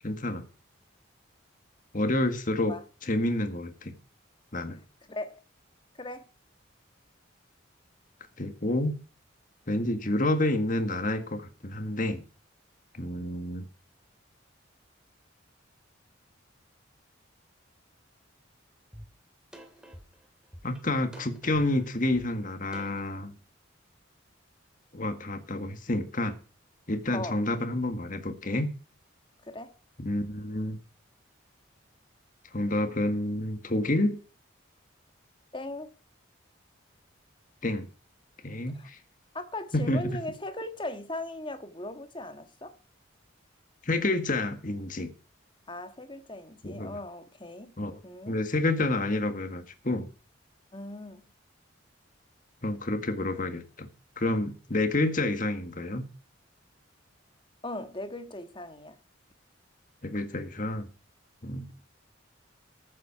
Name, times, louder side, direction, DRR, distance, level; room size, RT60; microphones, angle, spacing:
voice 1, 0.0-0.5 1.9-2.8 3.0-4.0 4.5-4.8 8.4-9.0 9.7-12.3 12.9-13.7 20.6-23.3 24.9-26.3 26.9-28.7 30.0-30.8 32.5-34.2 37.6-37.9 38.4-39.0 39.7-40.0 43.8-45.1 46.6-47.0 47.8-48.0 48.3-50.1 52.6-53.9 54.2-56.0 60.0-60.9 61.4-61.8, left 1 dB, 40° left, 1.7 m, -29 dB
voice 2, 5.1-5.4 6.0-6.3 27.1-27.4 29.4-29.7 35.5-35.9 38.7-38.9 39.3-42.7 45.7-47.7 48.0-48.4 50.7-51.3 57.6-59.0, left 1 dB, 25° left, 1.5 m, -38 dB
sound 1, 18.9-19.1 19.5-23.1, equal, 5° right, 2.5 m, -48 dB
14.5 x 7.6 x 5.9 m
head